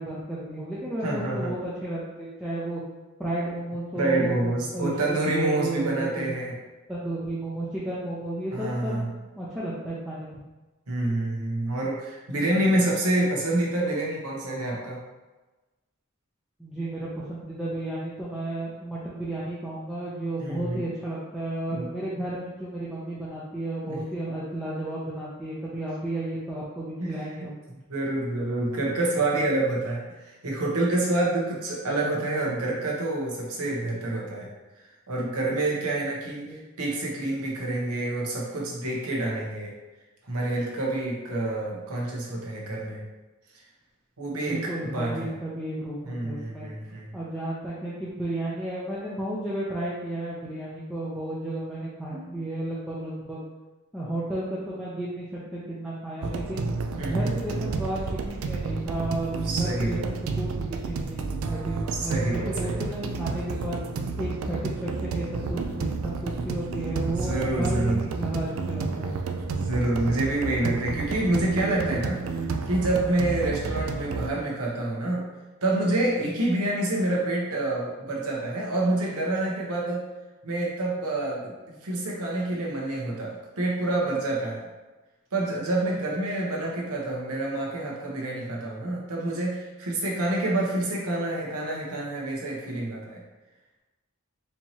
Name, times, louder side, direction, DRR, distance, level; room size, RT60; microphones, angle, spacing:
voice 1, 0.0-2.8 3.2-6.3 6.9-9.1 9.4-10.3 16.6-27.6 36.4-36.6 44.3-46.0 46.2-46.7 47.1-53.4 53.9-56.7 57.1-60.0 60.4-63.8 64.2-69.1, right 1 dB, 5° right, -9 dB, 0.5 m, -33 dB
voice 2, 1.0-1.5 4.0-6.5 8.5-9.1 10.9-15.0 20.4-20.8 21.7-21.9 23.8-24.0 27.0-27.2 27.9-34.5 35.1-39.7 40.2-43.0 44.2-45.3 46.0-47.1 57.0-57.3 59.4-60.1 62.0-62.8 67.1-68.0 69.5-72.4 72.7-75.2 75.6-80.1 80.4-84.6 85.3-93.2, right 2 dB, 90° right, -3 dB, 1.0 m, -27 dB
sound 1, 56.2-74.3, right 4 dB, 65° right, 0.3 m, -31 dB
4.4 x 2.9 x 2.8 m, 1.2 s
head